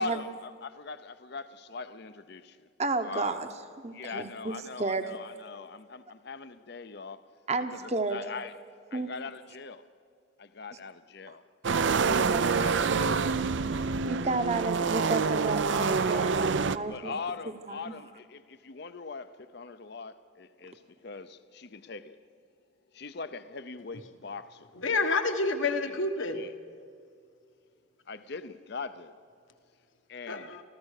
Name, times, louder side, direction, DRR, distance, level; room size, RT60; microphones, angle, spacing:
voice 1, 0.0-2.7 3.0-3.4 3.9-7.3 7.7-8.6 8.9-9.8 10.4-11.4 12.0-13.5 16.0-16.3 16.9-22.2 22.9-24.7 25.8-26.0 26.3-26.5 28.1-29.1 30.1-30.5, left 4 dB, 55° left, 0.7 m, -41 dB
voice 2, 2.8-3.5 3.8-5.0 7.5-8.2 8.9-9.1 11.7-11.8 12.3-12.5 14.1-17.2 17.7-17.9, right 3 dB, 35° right, 1.0 m, -32 dB
sound 1, 11.6-16.8, right 5 dB, 65° right, 0.5 m, -26 dB
voice 3, 24.8-26.4 30.3-30.6, left 3 dB, 75° left, 1.5 m, -28 dB
27.5 x 14.5 x 6.6 m
head